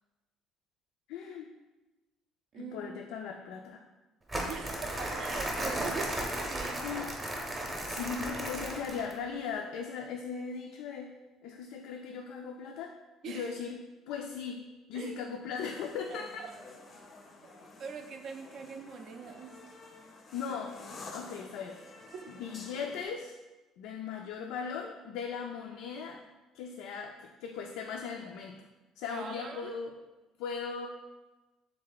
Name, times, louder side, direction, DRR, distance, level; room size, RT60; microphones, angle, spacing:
voice 1, 1.1-1.5 2.6-3.9 6.8-7.1 7.8-11.1 11.4-12.9 13.3-13.8 14.1-16.3 20.3-20.8 21.1-21.8 22.3-23.4 23.8-26.2 26.5-28.5 29.0-29.9 30.4-30.9, left 6 dB, 85° left, 2 dB, 0.3 m, -38 dB
voice 2, 2.5-2.8 4.5-6.8 13.2-13.5 14.9-15.2 16.1-16.5 17.4-17.5 17.8-19.6 22.1-22.3 29.1-29.8, right 6 dB, 45° right, 6 dB, 0.4 m, -42 dB
Crumpling crinkling, 4.3-9.2, right 1 dB, 15° right, 0.7 m, -35 dB
sound 1, 15.5-23.1, left 3 dB, 30° left, 0.5 m, -50 dB
3.6 x 3.2 x 3.9 m, 1.1 s
cardioid pair, 150°, 0 cm